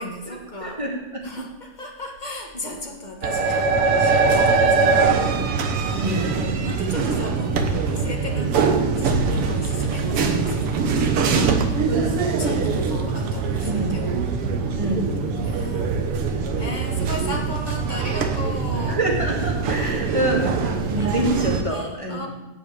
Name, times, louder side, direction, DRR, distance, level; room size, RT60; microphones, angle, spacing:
voice 1, 0.0-0.8 1.2-5.6 6.6-14.2 15.3-15.9 16.5-19.0 21.0-22.3, left 1 dB, 35° left, 1 dB, 0.7 m, -36 dB
voice 2, 0.6-1.3 5.9-6.5 11.9-12.8 13.6-14.1 14.7-15.2 18.9-22.3, right 1 dB, 10° right, -2 dB, 2.2 m, -27 dB
sound 1, 3.2-21.6, right 4 dB, 60° right, 1.8 m, -22 dB
16.0 x 5.7 x 8.9 m, 1.0 s
omnidirectional pair, 3.5 m